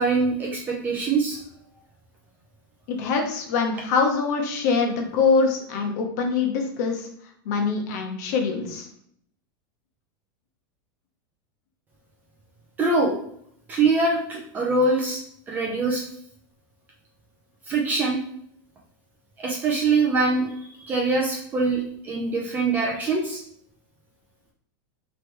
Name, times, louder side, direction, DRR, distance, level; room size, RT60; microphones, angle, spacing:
voice 1, 0.0-1.4 12.8-13.2 13.7-15.2 15.5-16.0 17.7-18.2 19.4-20.5 20.8-23.4, right 3 dB, 15° right, -1 dB, 0.5 m, -23 dB
voice 2, 2.9-7.1 7.5-8.9, left 4 dB, 50° left, 2 dB, 0.9 m, -24 dB
3.3 x 3.1 x 4.5 m, 0.67 s
supercardioid pair, 175°, 12 cm